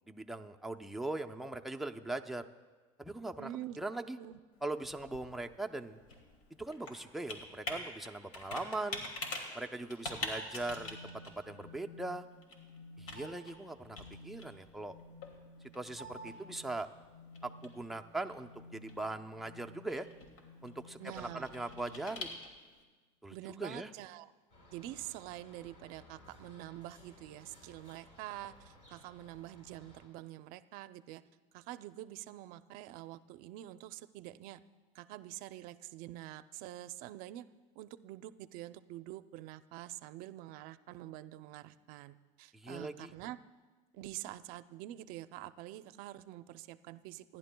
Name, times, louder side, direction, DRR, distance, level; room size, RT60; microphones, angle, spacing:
voice 1, 0.1-2.5 3.0-4.2 4.6-6.0 6.6-9.0 9.5-12.3 13.0-14.0 14.2-14.9 15.7-16.9 17.4-20.1 20.6-22.4 23.2-23.3 23.6-23.9 42.5-43.1, right 2 dB, ahead, 4 dB, 0.5 m, -40 dB
voice 2, 3.4-3.8 4.2-4.4 21.0-21.5 23.3-24.3 24.7-31.2 31.5-34.6 34.9-37.4 37.8-43.4 43.9-47.4, right 14 dB, 60° right, 13 dB, 0.5 m, -46 dB
Computer keyboard, 4.5-22.8, left 2 dB, 80° left, 2.4 m, -47 dB
sound 1, 10.7-22.4, left 2 dB, 20° left, 1.3 m, -55 dB
sound 2, 24.5-30.1, left 1 dB, 45° left, 4.7 m, -59 dB
27.0 x 11.0 x 2.3 m, 1.3 s
supercardioid pair, 120°, 16 cm